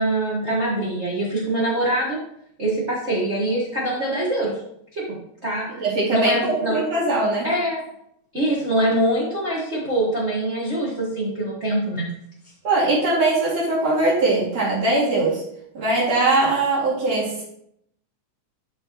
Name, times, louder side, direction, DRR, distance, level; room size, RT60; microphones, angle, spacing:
voice 1, 0.0-2.2 2.6-4.6 4.9-5.2 5.4-5.8 6.1-6.8 7.4-7.9 8.3-12.1, right 1 dB, 40° right, -6 dB, 1.0 m, -24 dB
voice 2, 5.8-7.5 12.6-15.4 15.7-17.4, right 2 dB, 55° right, -7 dB, 3.3 m, -21 dB
11.5 x 4.5 x 3.0 m, 0.73 s
omnidirectional pair, 3.7 m